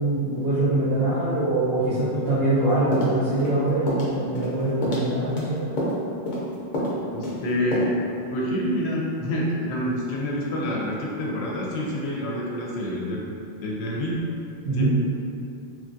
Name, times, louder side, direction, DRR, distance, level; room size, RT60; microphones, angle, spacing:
voice 1, 0.0-5.6 14.6-14.9, right 2 dB, 70° right, -11 dB, 0.9 m, -23 dB
sound 1, 2.9-3.6 3.9-4.1 4.3-4.6 4.8-5.4 5.8-6.0 6.3-6.5 6.7-7.0 7.2-7.4 7.7-7.8, equal, 50° left, 0.7 m, -27 dB
voice 2, 7.1-7.9 8.3-13.3 13.6-14.2 14.7-14.9, equal, 85° left, -3 dB, 0.8 m, -27 dB
3.0 x 2.3 x 2.5 m, 2.5 s
omnidirectional pair, 1.1 m